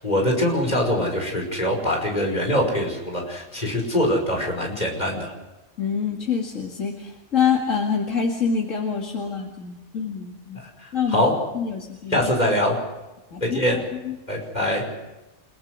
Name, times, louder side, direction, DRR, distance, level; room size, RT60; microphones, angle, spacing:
voice 1, 0.0-5.3 10.6-11.3 12.1-12.8 13.4-13.8 14.3-14.8, left 1 dB, 35° left, 1 dB, 5.6 m, -23 dB
voice 2, 5.8-10.6 10.9-11.2 11.5-12.2 13.3-14.1, left 6 dB, 85° left, 0 dB, 2.5 m, -26 dB
29.5 x 17.5 x 6.4 m, 1.1 s
omnidirectional pair, 1.3 m